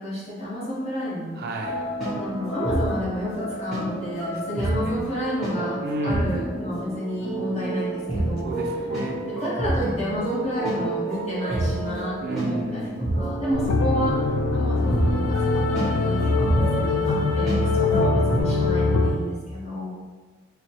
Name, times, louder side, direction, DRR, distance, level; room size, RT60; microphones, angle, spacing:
voice 1, 0.0-1.4 2.2-8.5 9.2-12.9 13.2-14.2 14.5-19.9, equal, 30° left, -9 dB, 1.1 m, -30 dB
voice 2, 1.4-1.8 4.5-5.0 5.8-6.4 8.4-9.2 12.2-13.0, right 1 dB, 50° right, 1 dB, 0.4 m, -32 dB
sound 1, 1.6-18.4, right 1 dB, ahead, 0.9 m, -29 dB
sound 2, 13.5-19.1, left 3 dB, 80° left, 0.4 m, -22 dB
3.1 x 2.1 x 4.1 m, 1.3 s
head